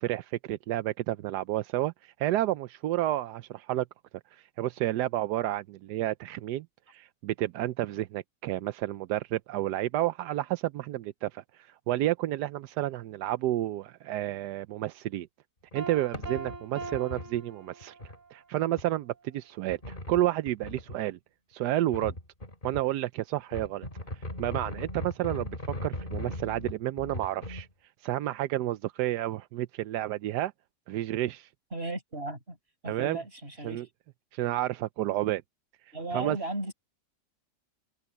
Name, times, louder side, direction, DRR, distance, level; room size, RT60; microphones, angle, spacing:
voice 1, 0.0-3.8 4.3-15.3 15.7-17.9 18.3-21.2 21.5-22.1 22.6-23.9 24.4-25.5 25.8-27.7 28.0-30.5 30.9-31.5 32.9-33.2 33.6-33.9 34.3-35.4 36.1-36.4, right 14 dB, 85° right, 1.2 m, -30 dB
sound 1, 15.7-15.8 16.1-17.4 17.8-18.2 18.8-18.9 19.7-21.0 21.9-22.8 23.4-27.7, left 1 dB, 30° left, 4.0 m, -38 dB
Piano, 15.7-18.3, right 4 dB, 55° right, 1.4 m, -41 dB
voice 2, 31.7-32.6 32.8-33.8 35.9-36.7, right 2 dB, 35° right, 5.3 m, -36 dB
omnidirectional pair, 1.7 m